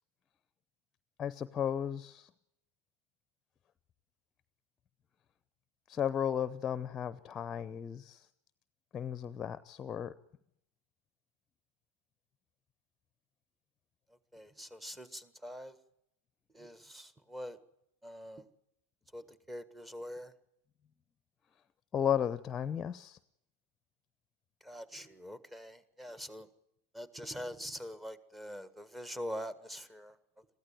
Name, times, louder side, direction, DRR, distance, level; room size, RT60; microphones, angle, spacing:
voice 1, 1.2-2.3 5.9-8.2 8.9-10.1 21.9-23.2, left 9 dB, 25° left, 16 dB, 0.7 m, -34 dB
voice 2, 14.3-15.8 16.5-17.6 18.0-18.5 19.1-20.3 24.6-26.5 26.9-30.5, equal, 10° right, 14 dB, 1.6 m, -44 dB
22.5 x 15.0 x 8.9 m, 0.79 s
figure-of-eight pair, 85°, 0 cm